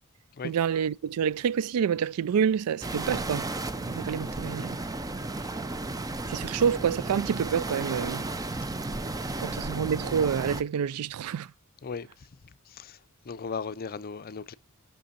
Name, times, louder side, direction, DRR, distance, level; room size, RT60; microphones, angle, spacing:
voice 1, 0.4-3.5 3.8-4.8 6.3-8.3 9.4-11.5, right 7 dB, 80° right, 0.3 m, -28 dB
sound 1, 2.8-10.6, right 2 dB, 15° right, 0.5 m, -34 dB
voice 2, 13.3-14.5, left 5 dB, 45° left, 0.5 m, -36 dB
13.0 x 6.0 x 2.6 m
head